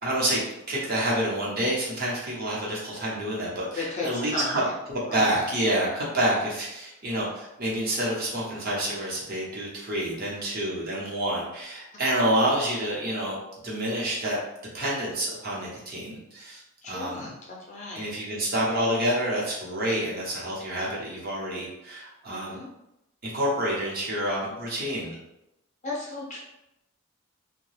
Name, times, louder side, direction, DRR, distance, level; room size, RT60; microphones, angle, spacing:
voice 1, 0.0-0.4 0.7-13.4 13.6-14.4 14.7-16.6 16.9-17.3 17.9-22.6 23.2-25.1, right 1 dB, 45° right, -5 dB, 0.8 m, -28 dB
voice 2, 3.7-4.6 5.1-5.2 16.8-17.3 17.7-18.1 22.3-22.7 25.8-26.4, left 3 dB, 35° left, -4 dB, 0.5 m, -34 dB
2.7 x 2.1 x 3.2 m, 0.88 s
head